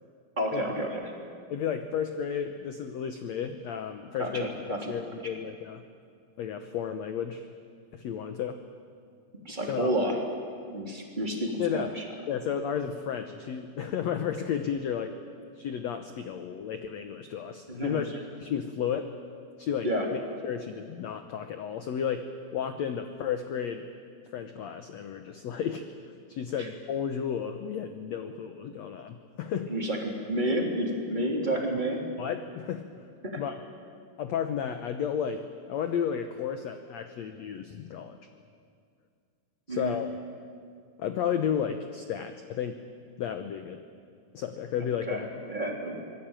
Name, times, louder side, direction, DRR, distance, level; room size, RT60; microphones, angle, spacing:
voice 1, 0.4-1.1 4.2-4.9 9.4-10.2 10.7-12.0 17.7-18.0 19.8-20.0 29.7-30.0 30.3-32.0 33.2-33.4 39.7-39.9 45.1-46.0, right 1 dB, 15° right, 0 dB, 3.0 m, -30 dB
voice 2, 1.5-4.5 4.9-5.8 6.4-7.5 7.9-8.6 9.7-9.9 11.6-12.0 12.3-15.1 15.5-19.2 19.6-23.8 24.2-25.9 26.3-29.7 31.6-31.7 32.2-32.9 33.4-33.5 34.2-38.2 39.7-40.2 41.0-42.8 43.2-43.8 44.3-45.3, left 8 dB, 75° left, 7 dB, 1.6 m, -33 dB
25.5 x 20.5 x 9.0 m, 2.2 s
omnidirectional pair, 4.4 m